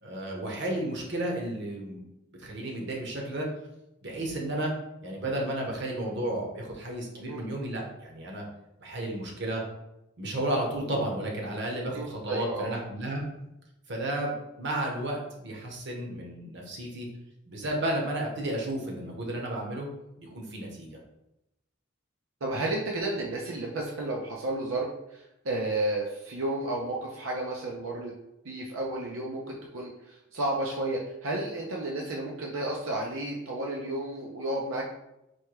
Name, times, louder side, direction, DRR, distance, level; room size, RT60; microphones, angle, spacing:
voice 1, 0.0-2.0 2.4-3.5 4.0-4.7 5.0-8.4 8.8-9.6 10.2-13.2 13.9-17.1 17.5-19.9 20.2-20.9, right 1 dB, 60° right, 0 dB, 1.0 m, -32 dB
voice 2, 11.9-12.7 22.4-28.1 28.4-34.9, right 2 dB, 85° right, -2 dB, 0.6 m, -32 dB
4.4 x 2.2 x 4.7 m, 0.88 s
head